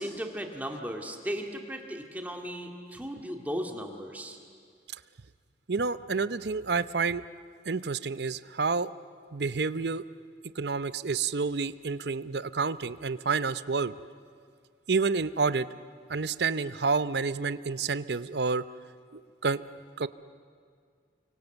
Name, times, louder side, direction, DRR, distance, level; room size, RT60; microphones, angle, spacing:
voice 1, 0.0-4.4, equal, 10° right, 2 dB, 2.1 m, -36 dB
voice 2, 5.7-7.2 7.7-8.9 9.3-10.0 10.6-13.9 14.9-15.7 16.1-18.6 19.4-19.6 20.0-20.1, right 4 dB, 70° right, 14 dB, 0.7 m, -29 dB
29.5 x 25.0 x 8.1 m, 2.1 s
head